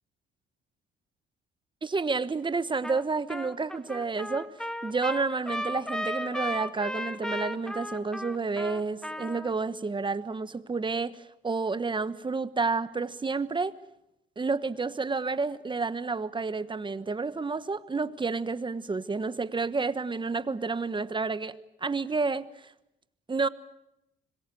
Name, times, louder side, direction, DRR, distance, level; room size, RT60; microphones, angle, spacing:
voice 1, 1.8-4.5 4.8-13.7 14.4-22.7 23.3-23.5, right 4 dB, 25° right, 1.2 m, -30 dB
Trumpet, 2.8-3.0 3.3-9.5, left 1 dB, 5° left, 2.0 m, -35 dB
25.5 x 22.5 x 7.7 m
cardioid pair, 90°, 20 cm